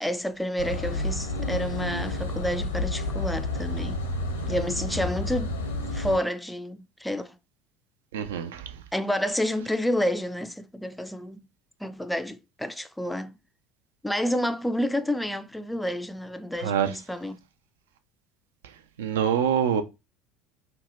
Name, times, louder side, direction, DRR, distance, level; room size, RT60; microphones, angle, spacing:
voice 1, 0.0-4.0 4.5-5.5 5.9-7.4 8.9-11.5 11.8-13.4 14.0-17.4, equal, 5° left, 0.3 m, -29 dB
sound 1, 0.6-6.2, left 2 dB, 75° left, 0.6 m, -30 dB
voice 2, 8.1-8.7 16.6-16.9 19.0-19.8, right 8 dB, 70° right, 0.4 m, -25 dB
2.7 x 2.2 x 2.9 m
figure-of-eight pair, 65°, 0 cm